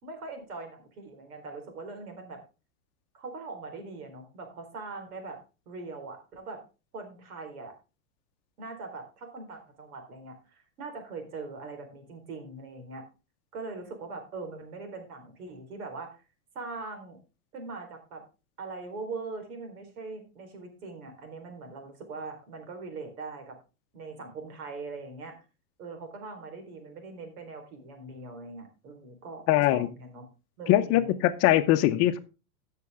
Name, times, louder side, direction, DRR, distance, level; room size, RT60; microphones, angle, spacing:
voice 1, 0.0-2.4 3.1-5.4 5.7-6.6 6.9-7.7 8.6-13.0 13.5-16.2 16.5-17.2 17.5-18.2 18.6-23.6 23.9-25.3 25.8-30.3 30.6-31.2, right 3 dB, 80° right, 5 dB, 4.2 m, -41 dB
voice 2, 29.5-29.9 30.7-32.2, left 14 dB, 35° left, 10 dB, 0.7 m, -22 dB
13.5 x 6.7 x 3.6 m, 0.31 s
supercardioid pair, 140°, 44 cm